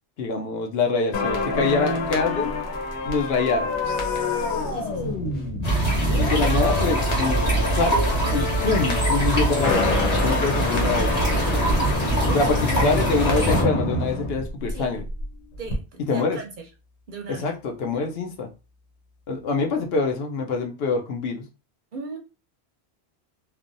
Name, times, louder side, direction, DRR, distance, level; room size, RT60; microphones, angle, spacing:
voice 1, 0.2-2.5 3.0-4.7 6.1-7.4 7.7-11.1 12.3-15.0 16.1-16.4 17.3-18.5 19.3-21.4, left 4 dB, 70° left, 0.8 m, -25 dB
sound 1, 1.1-15.3 15.5-15.8, left 3 dB, 90° left, 1.1 m, -27 dB
voice 2, 4.7-5.1 12.3-12.5 12.7-13.6 14.7-14.9 15.6-16.7 17.1-17.5 21.9-22.2, right 3 dB, 55° right, 0.6 m, -36 dB
sound 2, 5.6-13.6, right 1 dB, 35° left, 1.5 m, -23 dB
3.2 x 2.1 x 2.5 m
omnidirectional pair, 1.1 m